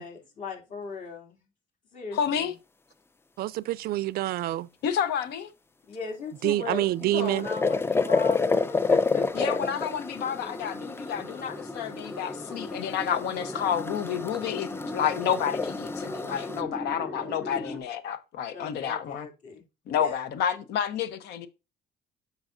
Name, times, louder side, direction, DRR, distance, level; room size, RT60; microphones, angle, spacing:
voice 1, 0.0-1.4 1.9-2.5 5.9-9.7 17.2-17.3 18.5-19.6 20.0-20.1, left 5 dB, 50° left, 2.8 m, -37 dB
voice 2, 2.1-2.6 4.8-5.5 9.3-19.3 19.9-21.5, left 8 dB, 80° left, 1.0 m, -30 dB
voice 3, 3.4-4.7 6.4-7.5, right 15 dB, 65° right, 0.4 m, -27 dB
sound 1, 6.8-16.6, left 4 dB, 15° left, 0.4 m, -29 dB
sound 2, 9.2-17.8, left 1 dB, 5° right, 0.7 m, -39 dB
8.0 x 5.6 x 2.6 m
cardioid pair, 110°, 17 cm